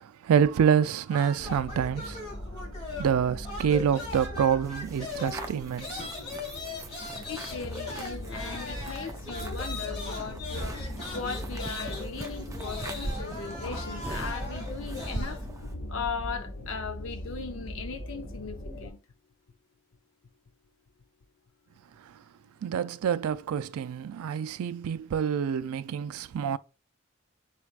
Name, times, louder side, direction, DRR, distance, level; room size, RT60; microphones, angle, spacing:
voice 1, 0.0-2.2 3.0-6.1 22.1-22.2 22.6-26.6, right 7 dB, 90° right, 0.3 m, -27 dB
sound 1, 1.1-3.2 3.4-15.4, left 3 dB, 25° left, 1.7 m, -40 dB
sound 2, 1.4-18.9, left 1 dB, 90° left, 1.7 m, -40 dB
sound 3, 4.6-15.7, right 2 dB, 15° right, 0.3 m, -41 dB
voice 2, 7.3-15.5 15.9-19.0, left 5 dB, 65° left, 0.6 m, -38 dB
4.6 x 4.1 x 2.4 m
head